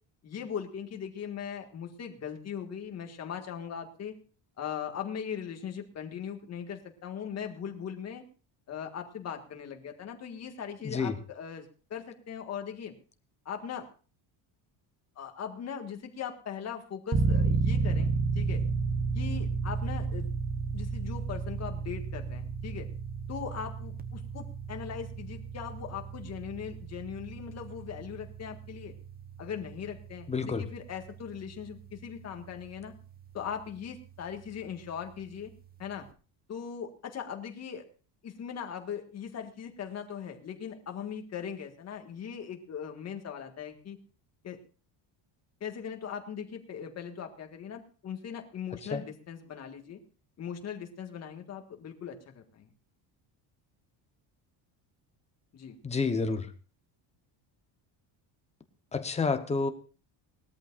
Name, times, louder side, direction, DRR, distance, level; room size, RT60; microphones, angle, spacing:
voice 1, 0.2-4.1 4.6-8.2 8.7-12.9 13.4-13.8 15.2-18.6 19.1-20.3 20.7-22.9 23.3-28.9 29.4-32.9 33.3-35.5 35.8-36.1 36.5-37.8 38.2-44.0 44.4-44.6 45.6-50.0 50.4-52.7 55.5-55.8, left 8 dB, 35° left, 4 dB, 1.8 m, -39 dB
voice 2, 10.8-11.2 30.3-30.7 48.8-49.0 55.8-56.5 58.9-59.7, left 4 dB, 15° left, 8 dB, 0.9 m, -29 dB
sound 1, 17.1-33.9, right 4 dB, 20° right, 0.7 m, -33 dB
20.0 x 13.5 x 2.5 m, 0.37 s
cardioid pair, 180°, 47 cm